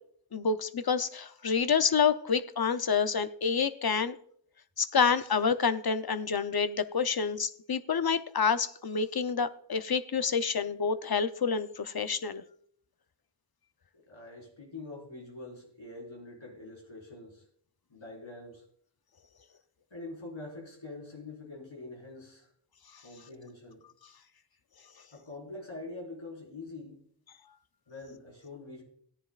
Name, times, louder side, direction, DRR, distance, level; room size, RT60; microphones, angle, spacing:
voice 1, 0.3-4.1 4.8-12.4, left 6 dB, 55° left, 0.7 m, -28 dB
voice 2, 13.9-17.4 17.9-18.6 19.9-22.5 23.0-23.8 25.1-26.9 27.9-28.8, left 2 dB, 85° left, 4.9 m, -45 dB
17.0 x 10.5 x 2.4 m
wide cardioid pair, 50°, 46 cm